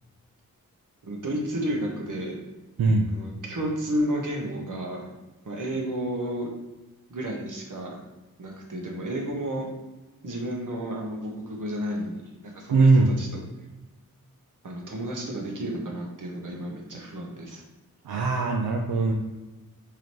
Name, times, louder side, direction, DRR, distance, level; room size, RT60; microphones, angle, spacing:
voice 1, 1.0-2.4 3.1-5.0 5.4-6.5 7.1-7.9 8.4-9.7 10.2-13.4 14.6-17.6, right 1 dB, 60° right, -1 dB, 1.1 m, -32 dB
voice 2, 2.8-3.1 12.7-13.1 18.0-19.1, right 3 dB, 90° right, 0 dB, 0.5 m, -20 dB
4.8 x 2.9 x 3.0 m, 1.1 s
cardioid pair, 45°, 35 cm